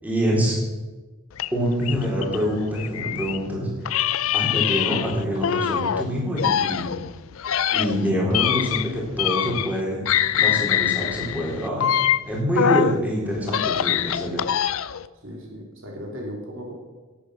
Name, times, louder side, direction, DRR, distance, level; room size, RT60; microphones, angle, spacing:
voice 1, 0.0-0.6 1.5-3.9 4.3-6.9 7.7-11.9 12.3-14.4, equal, 5° right, -4 dB, 4.0 m, -25 dB
sound 1, 1.4-3.4 3.9-6.0 6.4-9.8 10.1-13.0 13.4-15.1, left 9 dB, 65° left, 0.5 m, -24 dB
voice 2, 15.1-16.8, equal, 60° right, 0 dB, 3.0 m, -36 dB
17.5 x 8.6 x 6.4 m, 1.2 s
head